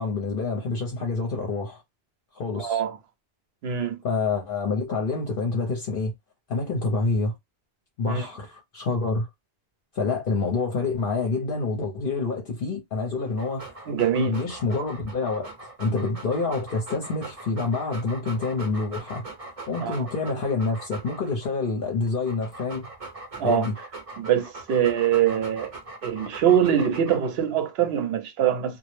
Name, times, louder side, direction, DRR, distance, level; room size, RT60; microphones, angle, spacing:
voice 1, 0.0-1.8 2.3-2.8 4.0-6.1 6.5-7.3 8.0-9.3 9.9-13.7 14.2-15.5 15.8-22.9 23.4-23.7, left 3 dB, 60° left, 0.8 m, -27 dB
voice 2, 2.6-3.0 3.6-4.0 8.0-8.3 13.9-14.4 19.8-19.9 23.4-23.7 24.2-25.7 26.0-28.8, right 9 dB, 75° right, 0.8 m, -23 dB
Dog, 13.3-21.5 22.1-27.5, right 2 dB, 40° right, 0.8 m, -41 dB
2.2 x 2.0 x 3.0 m
omnidirectional pair, 1.1 m